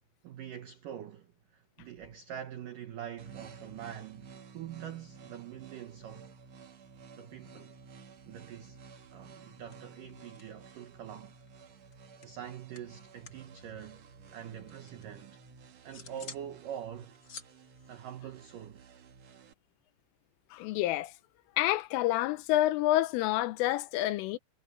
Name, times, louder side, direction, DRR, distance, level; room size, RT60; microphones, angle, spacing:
voice 1, 0.2-6.3 7.2-7.7 8.3-8.8 9.1-11.3 12.2-14.1 14.3-15.4 15.8-17.2 17.9-18.8, right 10 dB, 85° right, 1.8 m, -44 dB
sound 1, 3.2-19.5, right 5 dB, 60° right, 1.7 m, -53 dB
sound 2, 9.2-9.5 9.7-10.9 11.2-13.5 13.8-15.1 15.5-16.5 16.8-18.9, left 5 dB, 55° left, 1.3 m, -52 dB
voice 2, 20.5-21.1 21.6-24.4, left 15 dB, 85° left, 3.5 m, -28 dB
omnidirectional pair, 5.6 m